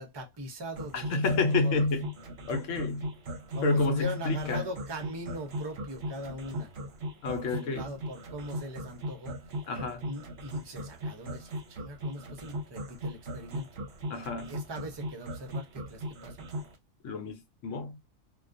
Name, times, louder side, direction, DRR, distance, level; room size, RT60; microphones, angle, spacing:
voice 1, 0.0-1.2 1.6-1.8 3.5-6.7 7.3-9.4 10.1-13.7 14.4-16.5, equal, 35° right, 0.4 m, -40 dB
sound 1, 0.8-16.7, equal, 60° right, 0.8 m, -38 dB
voice 2, 0.9-2.1 2.5-3.1 3.6-4.7 7.2-7.9 9.7-10.1 14.1-14.5 17.0-18.0, left 3 dB, 70° left, 1.0 m, -29 dB
2.3 x 2.2 x 2.5 m
omnidirectional pair, 1.4 m